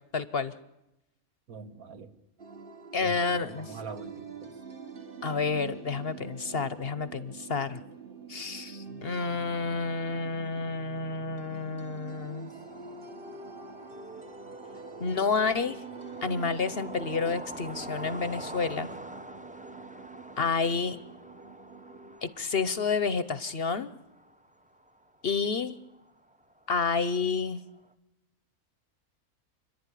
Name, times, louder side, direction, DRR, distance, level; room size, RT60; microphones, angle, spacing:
voice 1, 0.1-0.5 2.9-3.7 5.2-7.8 8.3-12.5 15.0-15.8 16.2-18.9 20.4-21.0 22.2-23.9 25.2-25.8 26.7-27.6, left 4 dB, 45° left, 15 dB, 1.0 m, -30 dB
voice 2, 1.5-2.1 3.0-4.6, right 5 dB, 80° right, 9 dB, 1.9 m, -44 dB
sound 1, 2.4-22.2, right 5 dB, 40° right, 1.6 m, -45 dB
sound 2, 9.3-27.9, right 1 dB, 5° right, 0.7 m, -47 dB
29.0 x 11.5 x 10.0 m, 0.90 s
omnidirectional pair, 1.5 m